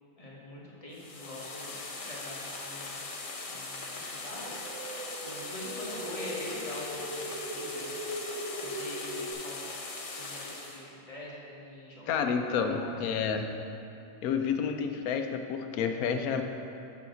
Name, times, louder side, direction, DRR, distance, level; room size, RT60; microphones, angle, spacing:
voice 1, 0.2-1.7 2.0-3.1 3.5-4.6 5.2-8.1 8.6-9.6 10.1-12.3 12.7-12.8, left 1 dB, 25° left, -6 dB, 1.4 m, -44 dB
sound 1, 0.9-10.8, left 3 dB, 45° left, 0.9 m, -40 dB
sound 2, 4.3-9.3, equal, 55° right, 0.4 m, -40 dB
voice 2, 12.1-13.5 14.2-16.4, left 6 dB, 85° left, 6 dB, 1.1 m, -29 dB
8.3 x 5.9 x 3.9 m, 2.6 s
omnidirectional pair, 1.5 m